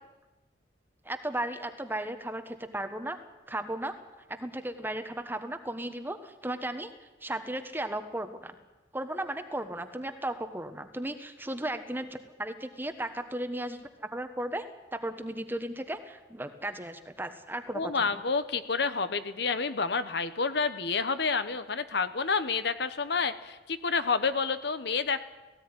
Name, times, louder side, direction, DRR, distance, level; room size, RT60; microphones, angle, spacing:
voice 1, 1.0-3.2 3.5-3.9 4.3-6.9 7.2-8.5 8.9-14.6 14.9-18.2, right 1 dB, 10° right, 8 dB, 1.3 m, -35 dB
voice 2, 17.7-25.2, left 4 dB, 65° left, 11 dB, 1.0 m, -29 dB
18.0 x 16.0 x 9.8 m, 1.1 s
head